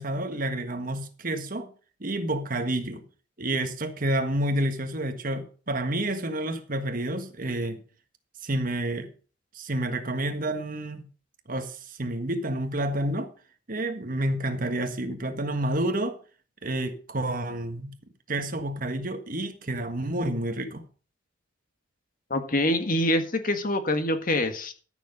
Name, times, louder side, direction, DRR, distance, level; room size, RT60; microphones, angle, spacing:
voice 1, 0.0-1.7 2.0-3.0 3.4-7.8 8.4-9.1 9.5-11.1 11.5-13.3 13.7-16.2 16.6-17.9 18.3-20.8, right 1 dB, 45° right, 1.5 m, -29 dB
voice 2, 22.3-24.7, left 1 dB, 45° left, 1.6 m, -25 dB
13.5 x 6.9 x 5.3 m
head